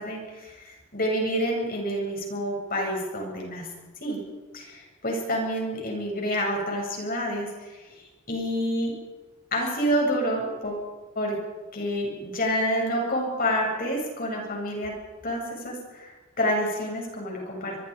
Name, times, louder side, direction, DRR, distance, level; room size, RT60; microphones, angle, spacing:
voice 1, 0.0-3.7 4.0-4.2 4.5-7.7 8.3-8.9 9.5-10.9 11.2-11.4 11.7-14.9 15.2-17.8, equal, 45° left, 0 dB, 7.7 m, -28 dB
26.0 x 22.5 x 5.2 m, 1.2 s
head